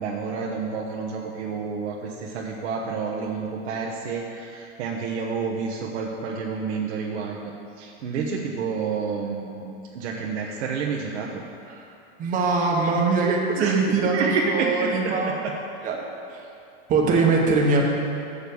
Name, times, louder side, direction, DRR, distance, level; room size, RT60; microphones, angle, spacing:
voice 1, 0.0-11.4 13.6-13.8 14.1-15.5, right 5 dB, 60° right, -1 dB, 1.1 m, -29 dB
voice 2, 12.2-15.3 15.8-16.0 16.3-16.4 16.9-17.9, right 4 dB, 20° right, -1 dB, 1.2 m, -22 dB
7.7 x 6.8 x 6.9 m, 2.6 s
supercardioid pair, 155°, 37 cm